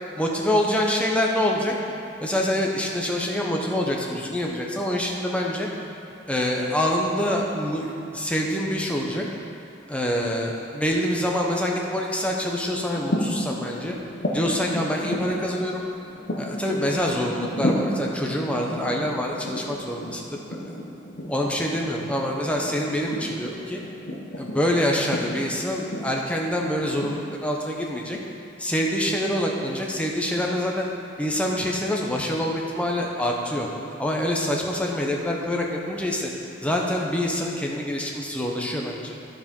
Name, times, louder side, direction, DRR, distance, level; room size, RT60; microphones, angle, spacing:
voice 1, 0.2-1.7 2.2-5.7 6.3-9.3 9.9-14.0 14.3-15.8 16.4-20.6 21.3-23.8 24.4-28.2 28.6-30.9 31.2-33.7 34.0-36.3 36.6-39.2, left 1 dB, 5° left, -1 dB, 0.8 m, -26 dB
sound 1, 12.9-27.1, equal, 60° left, 1.0 m, -33 dB
11.0 x 5.1 x 5.3 m, 2.8 s
head